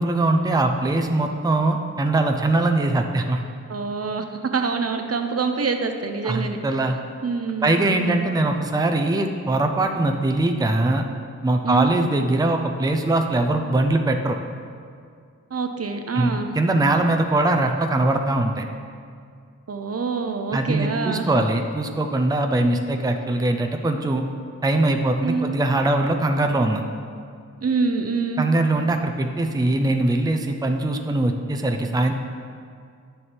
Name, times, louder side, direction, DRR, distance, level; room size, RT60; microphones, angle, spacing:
voice 1, 0.0-3.4 6.2-7.0 7.6-11.0 11.4-14.4 16.1-18.6 20.5-24.2 24.6-26.8 28.4-32.1, right 2 dB, 10° right, 4 dB, 0.5 m, -21 dB
voice 2, 3.7-6.6 7.2-8.4 11.6-11.9 15.5-16.5 19.7-21.3 22.6-22.8 25.2-25.6 27.6-28.4, right 4 dB, 50° right, 5 dB, 0.7 m, -26 dB
10.5 x 7.0 x 3.4 m, 2.2 s
wide cardioid pair, 75°, 31 cm